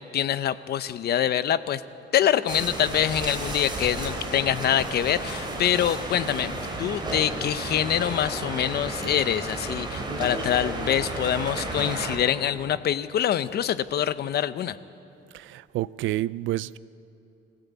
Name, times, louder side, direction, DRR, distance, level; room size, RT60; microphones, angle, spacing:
voice 1, 0.0-1.8 2.1-14.8, left 10 dB, 55° left, 14 dB, 0.7 m, -25 dB
sound 1, 2.5-12.2, right 2 dB, 20° right, 3.3 m, -32 dB
voice 2, 15.3-16.8, right 15 dB, 75° right, 19 dB, 0.5 m, -29 dB
24.5 x 17.0 x 8.4 m, 2.7 s
cardioid pair, 155°, 20 cm